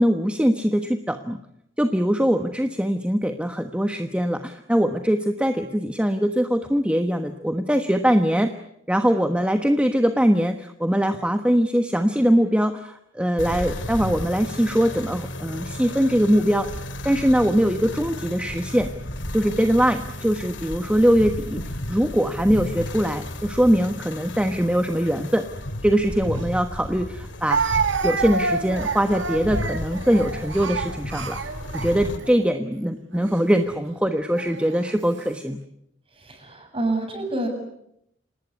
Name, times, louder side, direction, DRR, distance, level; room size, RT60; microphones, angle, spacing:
voice 1, 0.0-1.4 1.8-8.5 8.9-16.7 17.0-18.9 19.3-25.5 25.8-27.7 28.0-31.4 31.7-35.6, equal, 5° right, 6 dB, 1.2 m, -22 dB
sound 1, 13.4-32.2, left 1 dB, 75° left, 2.4 m, -34 dB
Speech, 26.4-26.5 27.5-32.4 33.1-33.4 34.4-34.9, right 4 dB, 70° right, 1.6 m, -28 dB
voice 2, 36.1-37.5, right 2 dB, 30° right, 5 dB, 7.6 m, -28 dB
28.0 x 19.0 x 9.8 m, 0.78 s
head